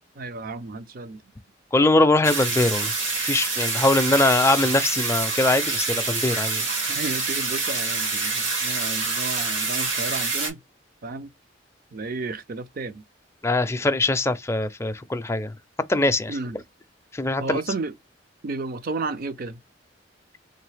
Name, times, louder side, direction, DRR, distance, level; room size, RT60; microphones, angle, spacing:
voice 1, 0.2-1.2 6.9-10.6 11.0-11.3 11.9-13.0 16.3-16.6 17.4-17.9 18.4-19.6, right 3 dB, 50° right, 0.5 m, -32 dB
voice 2, 1.7-2.9 3.2-6.6 13.4-15.5 15.9-16.4 17.1-17.6, left 2 dB, 15° left, 0.4 m, -22 dB
sound 1, 2.2-10.5, right 4 dB, 75° right, 2.1 m, -26 dB
3.8 x 3.1 x 3.3 m
head